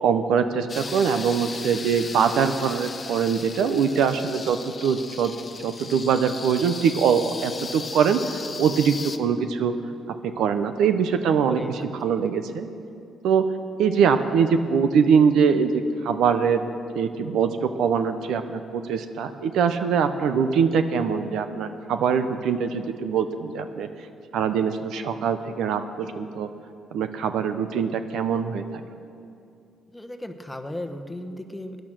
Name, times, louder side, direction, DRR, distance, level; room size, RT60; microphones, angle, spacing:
voice 1, 0.0-5.3 5.6-9.7 10.2-12.7 13.2-13.4 13.8-16.6 16.9-23.9 24.3-26.5 26.9-28.8, right 6 dB, 80° right, 9 dB, 0.8 m, -23 dB
sound 1, 0.7-9.2, left 4 dB, 35° left, 0.8 m, -37 dB
voice 2, 11.5-11.9 29.9-31.8, left 1 dB, 10° left, 6 dB, 1.1 m, -36 dB
17.0 x 10.5 x 6.1 m, 2.5 s
cardioid pair, 90°, 0 cm